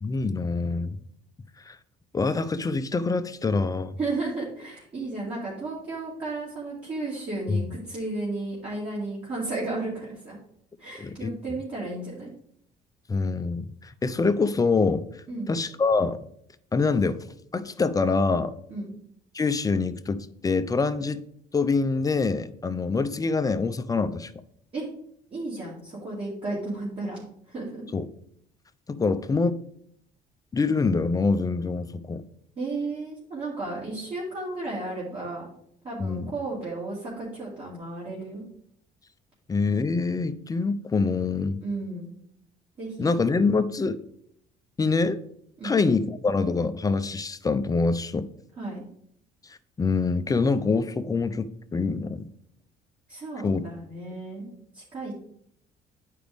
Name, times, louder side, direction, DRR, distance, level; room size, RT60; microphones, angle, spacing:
voice 1, 0.0-1.0 1.7-1.8 2.1-3.9 7.5-7.7 11.0-11.3 13.1-15.0 15.5-16.2 16.7-17.2 17.5-18.5 19.3-21.2 21.5-24.3 27.9-28.1 28.9-29.6 30.5-32.2 36.0-36.3 39.5-41.6 43.0-44.0 44.8-45.2 45.6-48.3 49.8-52.3 53.4-53.7, left 4 dB, 20° left, 12 dB, 0.5 m, -25 dB
voice 2, 4.0-10.4 10.8-12.3 15.3-15.5 18.7-18.9 24.7-24.9 25.3-27.2 27.5-27.8 32.6-35.5 35.8-38.4 41.6-42.1 42.8-43.1 45.6-45.7 48.6-48.8 53.1-54.5 54.7-55.1, right 2 dB, 35° right, -7 dB, 2.5 m, -33 dB
9.7 x 5.0 x 3.5 m, 0.68 s
cardioid pair, 110°, 17 cm